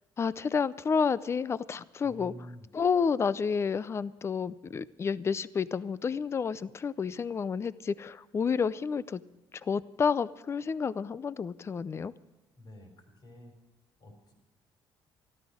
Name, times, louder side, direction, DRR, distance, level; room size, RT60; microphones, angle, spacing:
voice 1, 0.2-2.3 2.7-9.2 9.6-12.1, left 6 dB, 30° left, 18 dB, 0.5 m, -30 dB
voice 2, 2.0-2.7 12.5-13.5 14.0-14.3, equal, 50° left, 3 dB, 4.1 m, -49 dB
13.0 x 13.0 x 6.3 m, 1.0 s
cardioid pair, 115°, 9 cm